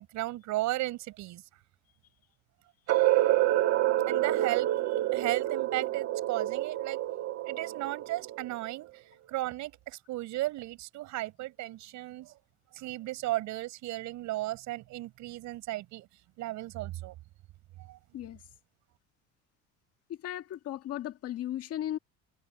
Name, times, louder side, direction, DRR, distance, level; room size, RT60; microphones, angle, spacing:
voice 1, 0.0-1.4 4.1-7.0 7.5-8.9 9.3-12.3 12.7-16.1 16.4-17.1 17.8-18.0, right 17 dB, 75° right, 5.9 m, -35 dB
sound 1, 2.9-8.8, right 15 dB, 60° right, 2.3 m, -28 dB
voice 2, 20.1-22.0, left 12 dB, 55° left, 1.8 m, -36 dB
cardioid pair, 155°, 29 cm